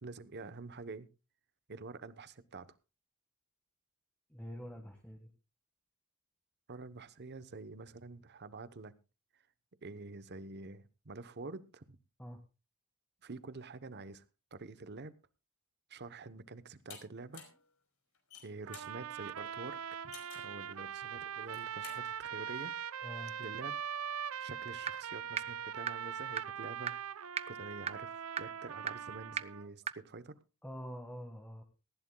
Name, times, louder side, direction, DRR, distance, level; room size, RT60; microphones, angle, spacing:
voice 1, 0.0-1.1 1.7-2.7 6.7-8.9 9.3-9.4 9.8-12.0 13.2-14.2 14.5-15.2 15.9-17.4 18.4-22.7 23.4-23.8 24.4-27.0 27.5-30.4, right 3 dB, 50° right, 0.9 m, -47 dB
voice 2, 4.3-5.3 12.2-12.4 23.0-23.3 30.6-31.6, equal, 5° left, 1.7 m, -46 dB
sound 1, 16.9-17.0 17.3-17.6 18.1-18.9 20.1-20.5 21.4-22.0, left 7 dB, 80° left, 4.7 m, -51 dB
sound 2, 18.7-29.7, right 8 dB, 70° right, 0.6 m, -42 dB
sound 3, 24.9-25.0 25.4-25.5 25.9-26.0 26.4-26.5 26.9-27.0 27.4-27.5 27.9-28.0 28.4-28.5 28.9-29.0 29.4-29.5 29.9-30.0, right 7 dB, 30° right, 0.7 m, -34 dB
18.5 x 15.0 x 2.3 m
head